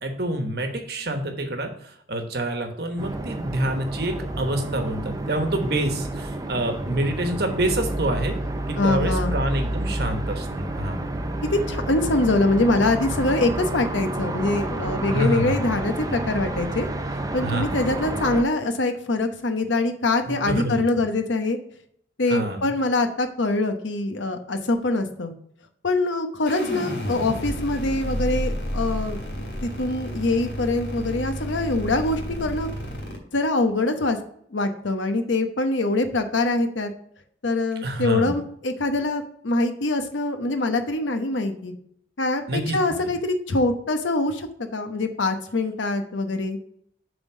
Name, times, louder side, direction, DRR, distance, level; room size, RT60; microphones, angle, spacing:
voice 1, 0.0-1.7 2.1-8.3 8.7-11.1 15.1-15.5 17.4-17.8 20.3-20.7 22.3-22.6 37.8-38.3 42.5-42.8, right 1 dB, 55° right, 5 dB, 1.1 m, -27 dB
sound 1, 3.0-18.4, right 1 dB, 20° right, 0.5 m, -29 dB
voice 2, 8.8-9.4 11.5-16.9 17.3-21.6 22.2-25.3 25.8-32.7 33.3-34.2 34.5-36.9 37.4-41.7 42.2-46.6, left 2 dB, 80° left, 7 dB, 0.9 m, -24 dB
sound 2, 26.5-33.2, equal, 60° left, 2.5 m, -31 dB
7.1 x 3.7 x 6.2 m, 0.66 s
head